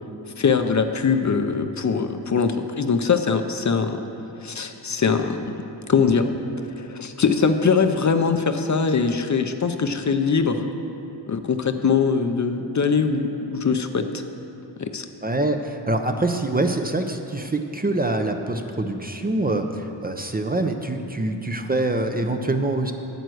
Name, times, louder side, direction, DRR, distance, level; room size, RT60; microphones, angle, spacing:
voice 1, 0.4-4.0 4.4-5.4 5.9-6.3 6.8-10.6 11.3-14.0 14.8-15.0, left 5 dB, 40° left, 7 dB, 0.7 m, -22 dB
voice 2, 15.2-22.9, right 2 dB, 20° right, 5 dB, 0.6 m, -25 dB
9.2 x 8.0 x 6.3 m, 2.9 s
cardioid pair, 80°, 45 cm